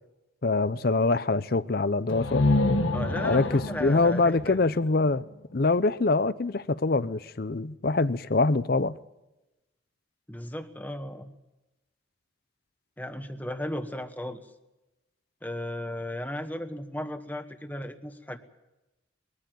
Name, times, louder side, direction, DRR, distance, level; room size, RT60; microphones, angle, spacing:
voice 1, 0.4-2.4 3.2-5.2 5.5-9.0, left 3 dB, 50° left, 0.6 m, -24 dB
sound 1, 2.1-5.8, left 2 dB, 85° left, 1.7 m, -28 dB
voice 2, 2.9-4.7 10.3-11.3 13.0-14.4 15.4-18.4, left 1 dB, 10° left, 1.2 m, -35 dB
21.5 x 14.0 x 9.1 m
head